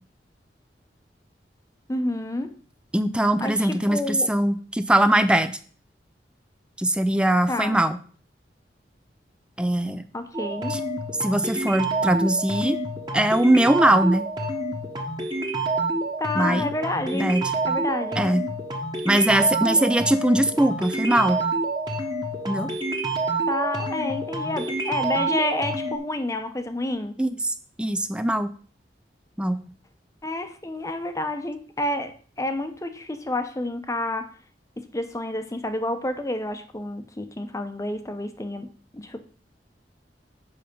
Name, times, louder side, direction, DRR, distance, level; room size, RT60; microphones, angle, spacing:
voice 1, 1.9-2.6 3.4-4.3 7.5-7.8 10.1-10.8 16.2-17.3 17.7-18.2 23.5-27.2 30.2-34.3 34.8-38.7 38.9-39.2, left 1 dB, 20° left, 8 dB, 0.8 m, -29 dB
voice 2, 2.9-5.6 6.8-8.0 9.6-10.0 10.7-10.8 11.2-12.8 13.1-14.2 16.3-16.7 17.1-17.4 18.2-18.4 19.0-21.4 22.5-22.7 27.2-28.5 29.4-29.6, right 1 dB, 5° right, 11 dB, 0.4 m, -21 dB
sound 1, 10.3-26.0, right 2 dB, 25° right, 1.4 m, -28 dB
7.7 x 5.7 x 5.2 m, 0.43 s
head